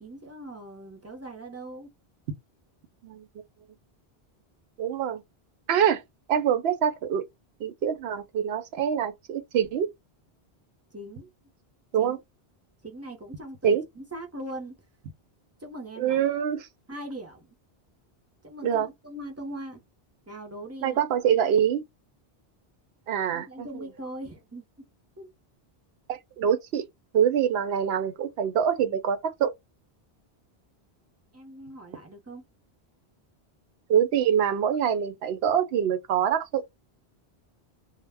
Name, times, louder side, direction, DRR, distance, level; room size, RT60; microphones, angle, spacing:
voice 1, 0.0-1.9 10.9-11.3 12.0-12.2 12.8-14.7 15.6-16.2 16.9-17.5 18.4-19.8 20.3-21.0 23.3-24.6 25.2-25.3 31.3-32.4, right 1 dB, 20° right, 0.5 m, -40 dB
voice 2, 4.8-5.2 5.7-6.0 6.3-7.2 7.6-9.9 11.9-12.2 13.6-13.8 16.0-16.7 18.6-18.9 20.8-21.8 23.1-23.7 26.1-26.8 27.1-29.5 33.9-36.6, right 8 dB, 80° right, 0.8 m, -25 dB
2.1 x 2.1 x 3.3 m
omnidirectional pair, 1.1 m